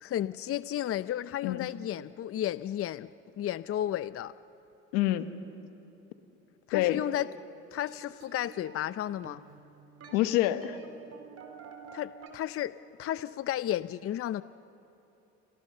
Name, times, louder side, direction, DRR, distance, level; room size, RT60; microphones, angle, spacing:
voice 1, 0.0-3.1 3.4-4.3 6.7-7.3 7.7-9.4 11.9-12.7 13.0-14.4, left 12 dB, 45° left, 15 dB, 0.6 m, -33 dB
voice 2, 4.9-5.3 6.7-7.0 10.1-10.8, left 14 dB, 85° left, 10 dB, 1.3 m, -27 dB
sound 1, 6.7-12.3, right 5 dB, 50° right, 4.3 m, -51 dB
29.0 x 25.5 x 6.8 m, 3.0 s
supercardioid pair, 80°, 31 cm